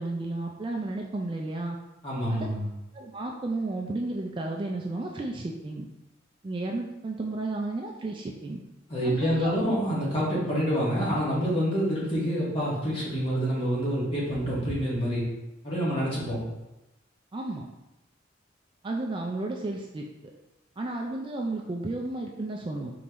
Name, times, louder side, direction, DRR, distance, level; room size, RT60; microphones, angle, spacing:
voice 1, 0.0-1.8 2.3-2.5 2.9-5.9 6.4-8.6 9.0-9.5 17.3-17.7 18.8-20.0 20.8-22.9, right 2 dB, 25° right, 1 dB, 0.3 m, -33 dB
voice 2, 2.0-2.7 8.9-15.2 15.6-16.4, equal, 30° left, -7 dB, 1.5 m, -27 dB
4.2 x 3.7 x 2.9 m, 0.98 s
head